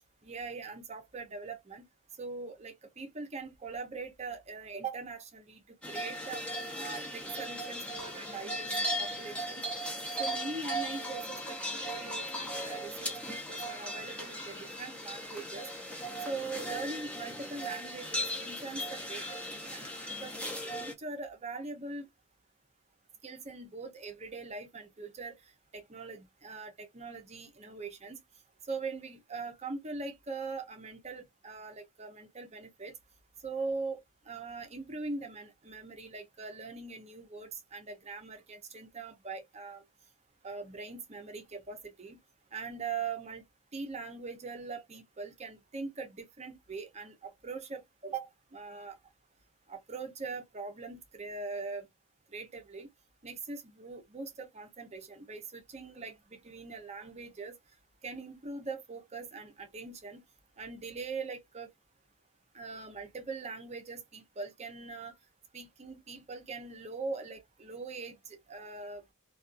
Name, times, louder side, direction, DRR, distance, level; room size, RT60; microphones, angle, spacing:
voice 1, 0.2-1.9 2.2-6.4 6.7-8.7 9.0-9.7 10.2-15.7 16.2-19.9 20.2-22.1 23.2-25.4 25.7-28.2 28.7-32.9 33.4-34.0 34.3-39.8 40.4-42.2 42.5-43.4 43.7-49.0 49.7-51.9 52.3-52.9 53.2-57.6 58.0-60.2 60.6-61.7 62.5-65.2 65.5-69.0, right 4 dB, 30° right, 0.6 m, -41 dB
sound 1, 5.8-20.9, equal, 5° left, 0.7 m, -37 dB
2.5 x 2.3 x 2.4 m
head